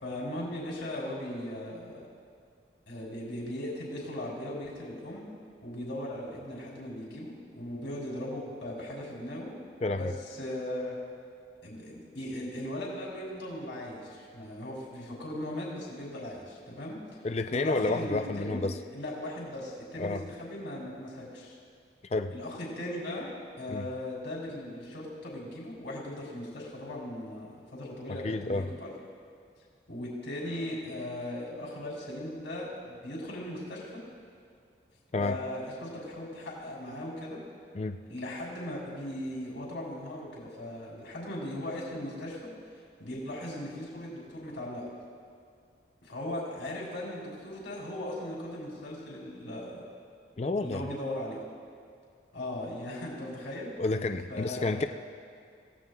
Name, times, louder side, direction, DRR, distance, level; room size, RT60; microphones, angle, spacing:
voice 1, 0.0-2.1 2.9-5.3 5.6-9.6 9.8-11.0 11.6-17.0 17.5-18.6 18.9-21.5 22.3-23.3 23.6-28.9 29.9-34.0 35.2-37.4 38.1-42.4 43.0-44.8 46.0-49.8 50.6-51.4 52.3-53.7 54.3-54.9, left 1 dB, 90° left, -4 dB, 3.3 m, -38 dB
voice 2, 9.8-10.1 17.2-18.7 20.0-20.2 22.1-22.3 23.7-23.9 28.2-28.7 35.1-35.4 37.7-38.0 50.4-50.8 53.8-54.9, left 3 dB, 35° left, 7 dB, 0.4 m, -30 dB
27.0 x 16.0 x 2.3 m, 2.3 s
head